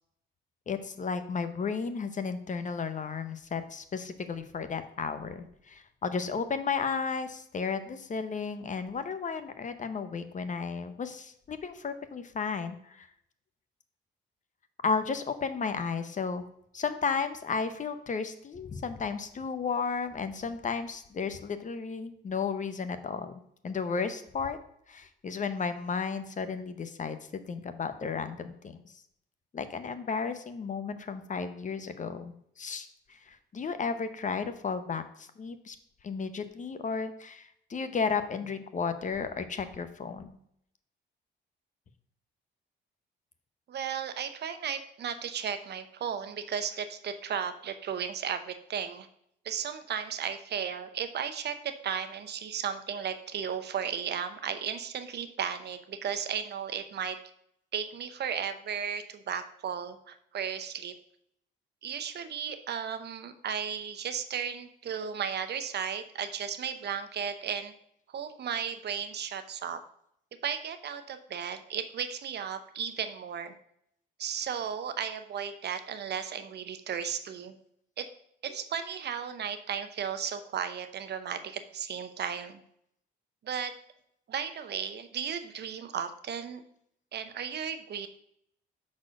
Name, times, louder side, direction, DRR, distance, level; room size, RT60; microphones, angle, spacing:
voice 1, 0.7-13.1 14.8-16.4 16.7-23.3 23.6-24.6 24.9-28.8 29.5-35.8 36.0-40.4, left 5 dB, 40° left, 10 dB, 0.8 m, -33 dB
voice 2, 43.7-49.1 49.4-57.2 57.7-61.0 61.8-67.7 68.1-69.8 70.4-73.5 74.2-77.6 78.0-78.1 78.4-82.6 83.4-83.7 84.3-86.6 87.1-88.1, right 7 dB, 60° right, 10 dB, 0.8 m, -35 dB
6.2 x 4.2 x 6.3 m, 0.71 s
cardioid pair, 90°, 20 cm